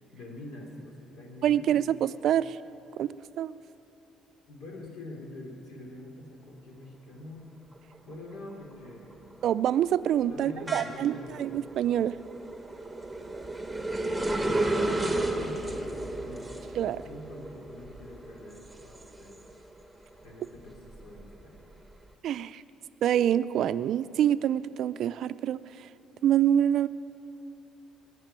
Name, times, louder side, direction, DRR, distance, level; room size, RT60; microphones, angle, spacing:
voice 1, 0.1-2.0 4.5-7.5 8.0-9.3 10.3-11.6 14.1-19.4 20.2-21.8, left 2 dB, 85° left, 0 dB, 3.3 m, -46 dB
voice 2, 1.4-2.6 3.0-3.5 9.4-12.2 16.8-17.0 22.2-22.6 23.0-25.9 26.2-26.9, right 10 dB, 65° right, 15 dB, 0.4 m, -26 dB
sound 1, 7.8-8.2 8.5-19.8 20.2-21.9, right 2 dB, 5° right, 1.2 m, -33 dB
19.5 x 7.5 x 9.0 m, 2.9 s
cardioid pair, 105°, 0 cm